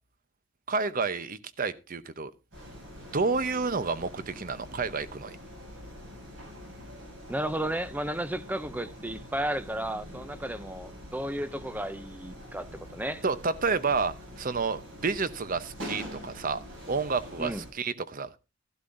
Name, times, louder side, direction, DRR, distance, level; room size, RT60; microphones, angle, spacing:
voice 1, 0.7-2.3 3.1-5.4 13.2-16.6 16.9-18.4, right 4 dB, 45° right, 0.8 m, -30 dB
sound 1, 2.5-17.7, equal, 65° right, 7.5 m, -45 dB
voice 2, 7.3-13.2 17.4-17.6, right 1 dB, 10° right, 0.5 m, -33 dB
13.0 x 12.0 x 2.6 m
head